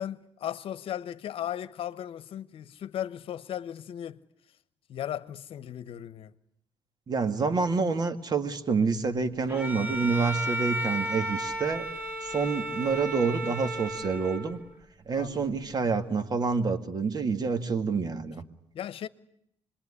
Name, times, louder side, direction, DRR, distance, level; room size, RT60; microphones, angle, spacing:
voice 1, 0.0-4.2 4.9-6.3 9.7-10.0 15.2-15.5 18.7-19.1, left 10 dB, 65° left, 1.0 m, -36 dB
voice 2, 7.1-11.9 12.2-14.6 15.1-18.4, right 4 dB, 40° right, 2.0 m, -28 dB
Bowed string instrument, 9.5-14.7, right 1 dB, 20° right, 2.3 m, -33 dB
26.5 x 22.0 x 9.9 m
cardioid pair, 90°, 10 cm